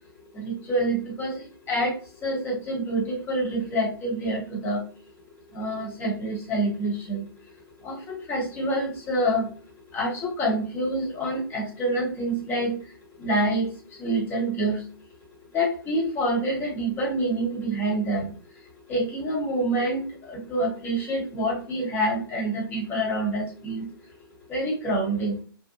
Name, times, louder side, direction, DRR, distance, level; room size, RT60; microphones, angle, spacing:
voice 1, 0.3-4.8 5.5-7.2 7.8-14.9 15.5-23.9 24.5-25.4, right 1 dB, 15° left, -2 dB, 0.9 m, -27 dB
2.7 x 2.1 x 2.4 m, 0.41 s
figure-of-eight pair, 130°, 13 cm